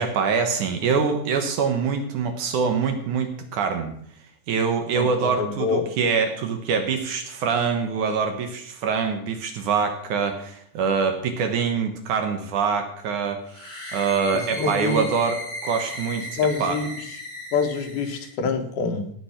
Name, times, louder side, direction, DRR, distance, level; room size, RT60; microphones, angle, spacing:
voice 1, 0.0-3.9 4.5-13.4 13.9-16.8, right 5 dB, 65° right, 6 dB, 2.5 m, -24 dB
voice 2, 4.9-5.9 14.3-15.1 16.4-16.9 17.5-19.1, left 5 dB, 85° left, 5 dB, 3.4 m, -26 dB
sound 1, 13.5-18.3, left 1 dB, 15° left, 3.9 m, -36 dB
17.0 x 7.6 x 5.8 m, 0.66 s
omnidirectional pair, 4.2 m